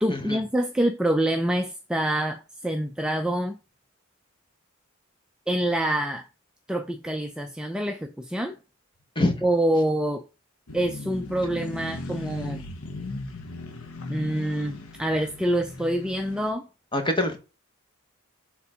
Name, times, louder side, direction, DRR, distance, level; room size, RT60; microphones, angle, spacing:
voice 1, 0.0-3.6 5.5-6.3 6.7-8.6 9.4-10.2 10.7-12.7 14.1-16.7, right 1 dB, 5° right, 0.4 m, -26 dB
voice 2, 9.1-9.5 16.9-17.4, left 1 dB, 20° left, 1.2 m, -25 dB
sound 1, 10.7-16.5, left 2 dB, 80° left, 1.1 m, -37 dB
6.7 x 3.7 x 4.9 m
head